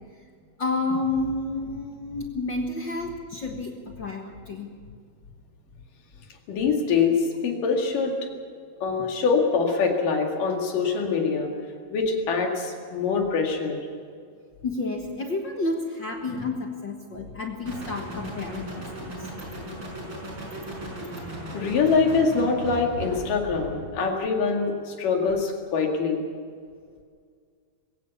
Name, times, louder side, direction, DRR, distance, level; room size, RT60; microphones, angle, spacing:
voice 1, 0.6-4.7 9.0-9.1 14.6-19.3, left 2 dB, 50° left, 2 dB, 1.5 m, -30 dB
voice 2, 6.5-8.1 8.8-11.5 11.9-13.9 21.5-26.3, left 5 dB, 70° left, 2 dB, 3.8 m, -24 dB
sound 1, 17.7-24.0, right 1 dB, 30° right, 6.1 m, -37 dB
22.0 x 17.5 x 7.1 m, 2.1 s
omnidirectional pair, 3.9 m